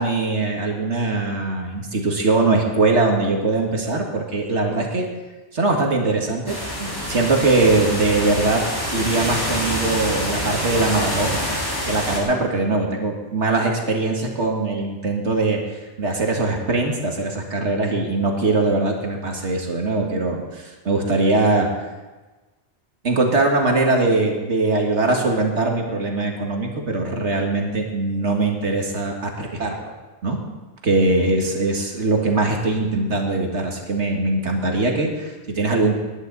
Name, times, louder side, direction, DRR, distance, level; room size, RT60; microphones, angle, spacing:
voice 1, 0.0-5.1 5.5-8.6 8.9-11.4 11.8-15.6 16.0-21.7 23.0-29.8 30.2-30.4 30.8-36.0, right 3 dB, 75° right, 1 dB, 2.2 m, -21 dB
sound 1, 6.5-12.2, equal, 20° left, 3.5 m, -26 dB
19.5 x 11.5 x 4.1 m, 1.2 s
omnidirectional pair, 1.2 m